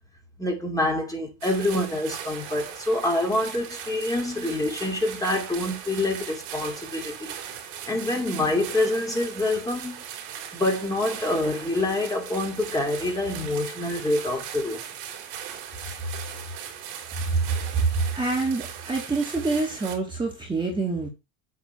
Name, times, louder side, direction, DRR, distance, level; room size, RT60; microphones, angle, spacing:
voice 1, 0.4-7.3 7.9-10.0 10.5-14.8, left 1 dB, 10° left, 2.6 m, -26 dB
sound 1, 1.4-20.0, right 9 dB, 75° right, 3.5 m, -39 dB
voice 2, 18.2-21.1, right 3 dB, 10° right, 2.2 m, -27 dB
8.5 x 4.4 x 5.7 m
cardioid pair, 135°, 42 cm